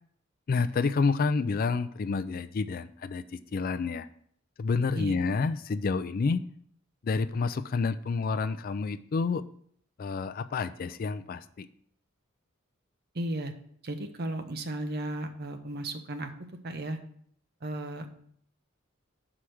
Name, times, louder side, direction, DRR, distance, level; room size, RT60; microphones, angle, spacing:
voice 1, 0.5-4.1 4.6-6.4 7.0-9.4 10.0-11.7, left 4 dB, 45° left, 12 dB, 0.3 m, -29 dB
voice 2, 13.1-13.5 13.8-16.3 16.6-17.0 17.6-18.1, right 1 dB, 50° right, 7 dB, 0.8 m, -34 dB
5.7 x 4.9 x 6.1 m, 0.63 s
head